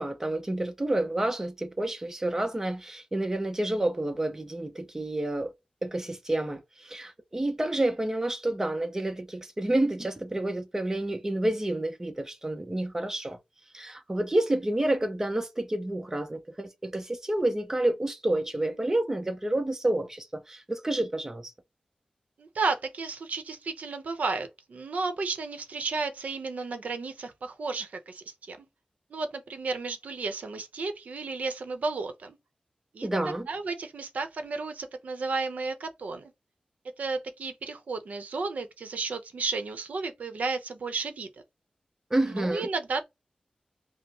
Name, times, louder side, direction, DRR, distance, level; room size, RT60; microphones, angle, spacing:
voice 1, 0.0-5.5 5.8-13.4 13.7-21.5 33.0-33.5 42.1-42.7, right 1 dB, 20° right, 0.7 m, -29 dB
voice 2, 22.4-28.7 29.1-32.4 32.9-33.1 33.5-36.3 37.0-41.3 42.2-43.0, right 4 dB, 75° right, 0.7 m, -33 dB
5.3 x 2.0 x 2.9 m
wide cardioid pair, 110°, 3 cm